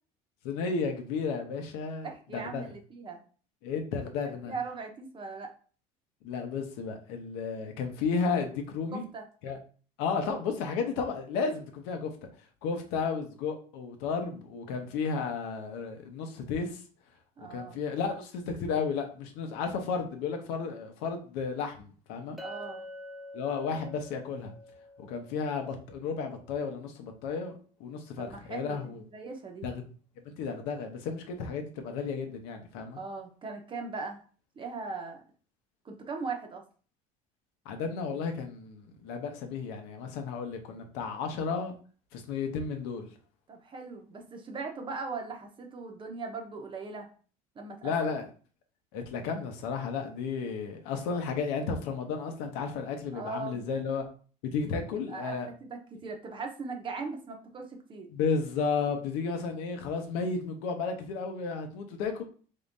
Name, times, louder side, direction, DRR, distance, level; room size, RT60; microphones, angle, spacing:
voice 1, 0.4-2.6 3.6-4.5 6.2-9.0 9.4-9.6 10.0-12.1 12.6-16.8 17.4-22.4 23.3-24.5 25.0-27.5 27.8-29.0 29.6-29.9 30.2-33.0 37.6-41.7 42.1-43.1 47.8-48.2 48.9-54.0 54.5-55.5 58.1-62.2, left 5 dB, 85° left, 0.9 m, -33 dB
voice 2, 2.0-3.2 4.5-5.5 8.9-9.2 17.4-17.8 22.4-22.9 28.2-29.7 32.9-34.2 34.6-35.2 35.8-36.6 43.5-47.1 47.5-48.2 53.1-53.7 54.6-54.7 55.1-58.1, right 4 dB, 30° right, 0.9 m, -39 dB
Chink clink, 22.4-26.6, left 1 dB, ahead, 0.6 m, -47 dB
3.7 x 3.7 x 2.6 m
cardioid pair, 115°, 16 cm